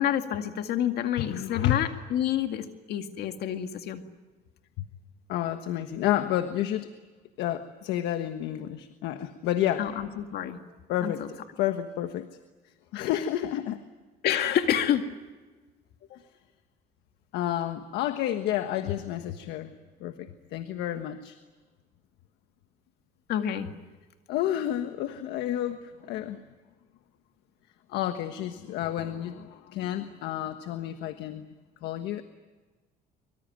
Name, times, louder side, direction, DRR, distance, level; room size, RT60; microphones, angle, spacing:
voice 1, 0.0-4.0 9.8-10.6 11.0-11.3 14.2-15.0 23.3-23.7, left 10 dB, 70° left, 6 dB, 2.1 m, -28 dB
voice 2, 1.2-1.9 4.8-4.9 5.3-6.9 7.4-9.9 10.9-11.2 11.6-12.3 12.9-13.8 17.3-19.7 20.0-21.4 24.3-26.4 27.9-31.5 31.8-32.2, left 12 dB, 85° left, 8 dB, 1.4 m, -30 dB
25.0 x 24.5 x 9.1 m, 1.3 s
cardioid pair, 110°, 17 cm